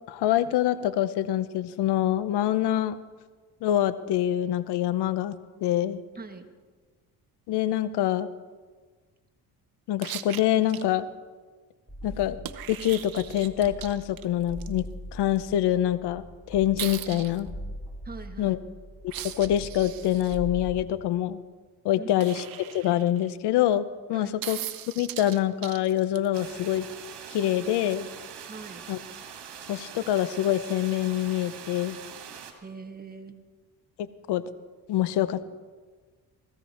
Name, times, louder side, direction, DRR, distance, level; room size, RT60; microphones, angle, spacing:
voice 1, 0.1-3.0 3.6-5.4 5.6-6.0 7.5-8.3 9.9-11.1 12.0-12.4 12.7-17.5 18.4-18.6 19.0-21.4 21.8-24.6 25.0-26.9 27.3-28.1 28.9-29.0 29.7-32.0 34.0-34.4 34.9-35.5, left 12 dB, 80° left, 15 dB, 0.8 m, -25 dB
voice 2, 6.2-6.5 18.0-18.6 22.0-22.3 24.1-24.4 28.5-28.8 32.6-33.4, right 4 dB, 25° right, 5 dB, 1.5 m, -42 dB
sound 1, 10.0-10.8 12.4-14.7 16.8-17.4 19.1-20.4 22.2-23.3 24.4-26.4 28.3-28.4, right 11 dB, 60° right, 0.9 m, -39 dB
sound 2, 11.9-20.9, equal, 5° right, 1.6 m, -42 dB
sound 3, 26.3-32.5, right 8 dB, 80° right, 2.0 m, -43 dB
17.0 x 15.5 x 4.3 m, 1.4 s
cardioid pair, 90°, 39 cm